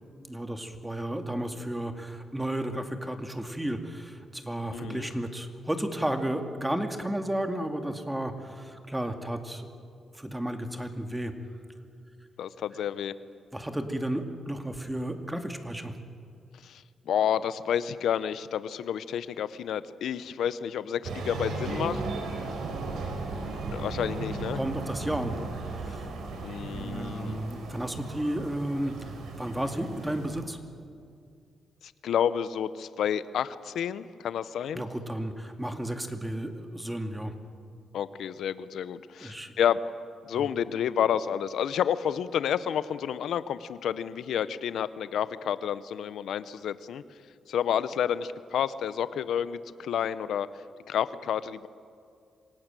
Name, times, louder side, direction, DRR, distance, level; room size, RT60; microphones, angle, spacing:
voice 1, 0.3-9.7 10.1-11.3 13.5-16.0 24.5-25.4 25.8-26.1 26.7-30.6 34.7-37.3 39.2-39.5 40.3-40.5, right 1 dB, 10° right, 6 dB, 2.4 m, -33 dB
voice 2, 4.7-5.1 12.4-13.1 16.6-22.0 23.7-24.6 26.4-27.4 31.8-34.8 37.9-39.8 40.3-47.0 47.5-50.5 50.9-51.7, left 9 dB, 80° left, 15 dB, 0.8 m, -30 dB
sound 1, 21.0-30.4, right 3 dB, 85° right, 4.2 m, -36 dB
26.0 x 18.0 x 9.1 m, 2.3 s
cardioid pair, 80°, 0 cm